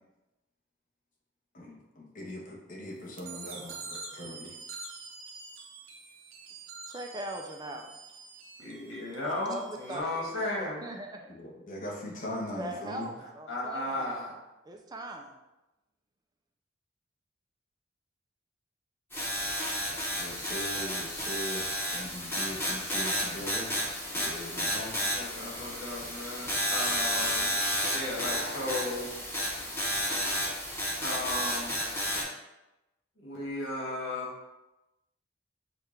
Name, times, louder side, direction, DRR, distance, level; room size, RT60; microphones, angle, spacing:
voice 1, 1.5-4.5 11.3-13.1 20.1-23.7 24.1-24.9, left 1 dB, 45° left, -2 dB, 0.9 m, -40 dB
sound 1, 3.2-10.0, right 4 dB, 90° right, 0.7 m, -46 dB
voice 2, 6.9-7.9 9.4-10.3 10.6-11.3 12.6-14.2 14.6-15.4, right 1 dB, 20° right, 3 dB, 0.3 m, -40 dB
voice 3, 8.6-10.8 13.5-14.4 25.1-27.6 27.9-29.1 31.0-31.7 33.2-34.4, left 1 dB, 80° left, -4 dB, 1.5 m, -35 dB
sound 2, 19.1-32.2, equal, 10° left, 1.0 m, -32 dB
6.4 x 2.4 x 3.2 m, 0.99 s
head